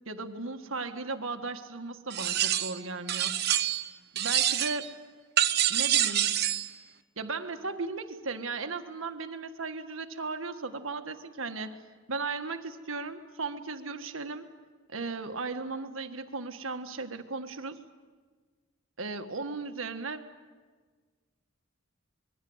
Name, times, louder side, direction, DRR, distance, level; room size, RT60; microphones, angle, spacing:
voice 1, 0.0-3.5 4.1-4.9 5.7-6.3 7.2-11.8 12.1-14.5 14.9-17.8 19.0-20.3, right 3 dB, 80° right, 7 dB, 1.6 m, -36 dB
sound 1, 2.1-2.8 3.1-3.9 4.2-4.9 5.4-6.7, right 11 dB, 50° right, 1.0 m, -26 dB
27.5 x 22.0 x 7.9 m, 1.5 s
head